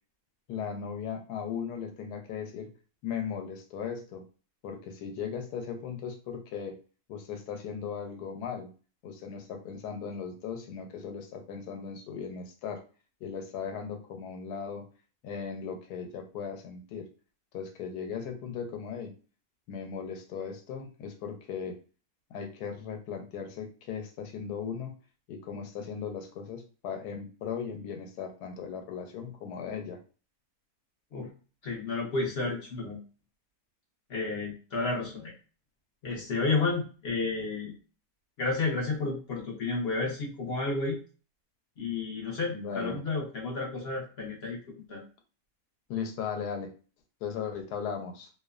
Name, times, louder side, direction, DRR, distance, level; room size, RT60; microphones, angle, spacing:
voice 1, 0.5-2.7 3.0-4.2 4.6-6.8 7.1-8.7 9.0-12.8 13.2-14.8 15.2-17.1 17.5-19.1 19.7-21.8 22.3-25.0 25.3-30.0 42.5-43.0 45.9-46.7 47.2-48.3, left 7 dB, 85° left, 4 dB, 1.1 m, -37 dB
voice 2, 31.6-33.0 34.1-35.3 36.0-37.7 38.4-41.0 41.8-44.6 44.9-45.0, left 3 dB, 60° left, -2 dB, 0.7 m, -31 dB
2.7 x 2.0 x 2.3 m, 0.36 s
omnidirectional pair, 1.7 m